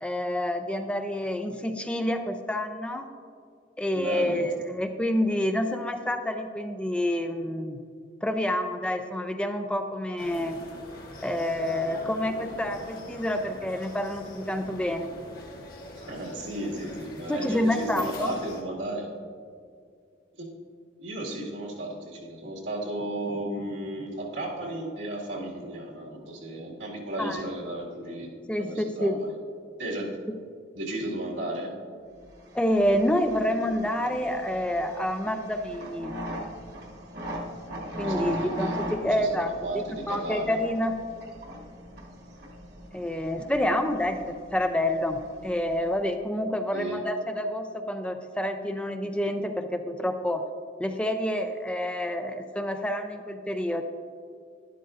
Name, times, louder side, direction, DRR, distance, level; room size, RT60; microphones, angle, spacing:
voice 1, 0.0-3.1 3.8-7.8 8.2-10.6 11.2-15.1 17.3-18.3 27.2-27.4 28.5-29.2 32.5-36.1 38.0-39.5 40.1-41.0 42.9-50.4 50.8-53.8, left 1 dB, 5° left, 6 dB, 0.4 m, -28 dB
voice 2, 3.9-4.5 16.0-19.1 20.3-20.5 21.0-28.3 28.6-29.3 29.8-30.2 30.7-31.7 38.0-40.6 46.7-47.0, right 1 dB, 85° right, -3 dB, 2.2 m, -34 dB
sound 1, 10.2-18.6, left 1 dB, 50° left, 1.4 m, -43 dB
sound 2, 32.3-46.2, equal, 55° right, 1.3 m, -40 dB
12.0 x 11.5 x 2.5 m, 2.2 s
head